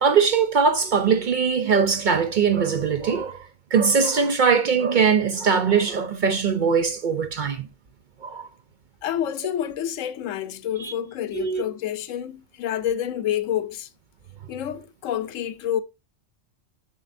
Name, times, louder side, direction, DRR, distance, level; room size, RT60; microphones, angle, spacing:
voice 1, 0.0-7.6 8.2-8.5 10.8-10.9 11.3-11.6, right 6 dB, 55° right, 0.5 m, -21 dB
voice 2, 9.0-13.9 14.5-15.8, left 10 dB, 80° left, 1.0 m, -28 dB
7.3 x 7.0 x 2.5 m
omnidirectional pair, 1.3 m